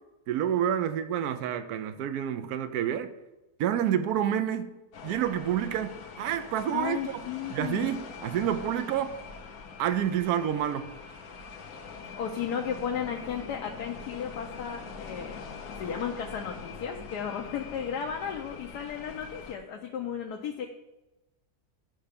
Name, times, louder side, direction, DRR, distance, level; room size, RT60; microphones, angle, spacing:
voice 1, 0.3-3.1 3.6-4.7 5.0-7.0 7.5-9.1 9.8-10.9, right 10 dB, 75° right, 10 dB, 1.1 m, -28 dB
sound 1, 4.9-19.6, left 5 dB, 65° left, 1.4 m, -43 dB
voice 2, 6.7-7.9 12.2-15.4 15.8-20.7, left 8 dB, 85° left, 2 dB, 1.4 m, -34 dB
12.0 x 5.6 x 5.2 m, 1.0 s
omnidirectional pair, 1.7 m